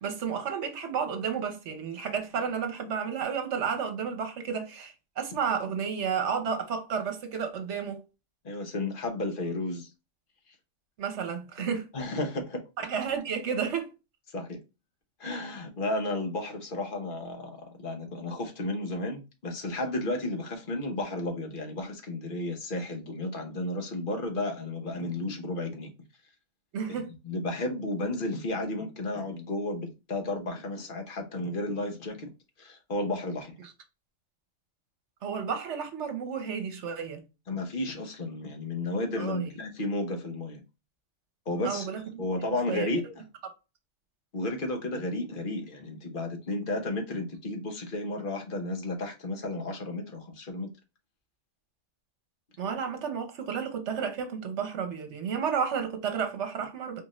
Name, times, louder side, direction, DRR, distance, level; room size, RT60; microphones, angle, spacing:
voice 1, 0.0-8.0 11.0-11.9 12.8-13.9 26.7-27.1 35.2-37.2 39.2-39.5 41.6-42.2 42.7-42.9 52.6-57.0, right 6 dB, 65° right, 1.2 m, -32 dB
voice 2, 8.4-9.9 11.6-11.7 11.9-12.6 14.3-14.6 15.2-25.9 27.2-32.3 32.6-33.6 37.5-40.6 41.5-41.9 42.2-43.2 44.3-50.7, left 2 dB, 45° left, 1.0 m, -33 dB
4.3 x 2.6 x 3.1 m
omnidirectional pair, 1.3 m